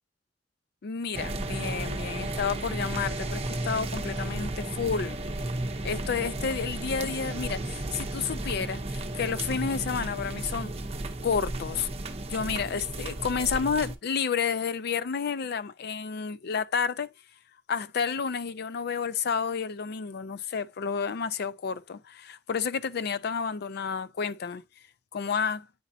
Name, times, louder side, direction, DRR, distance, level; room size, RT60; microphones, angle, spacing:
voice 1, 0.8-5.2 5.8-10.7 11.2-11.9 12.3-17.1 17.7-24.6 25.1-25.7, left 6 dB, 60° left, 0.4 m, -30 dB
sound 1, 1.1-13.9, right 2 dB, 35° right, 0.8 m, -33 dB
9.4 x 4.1 x 2.7 m
head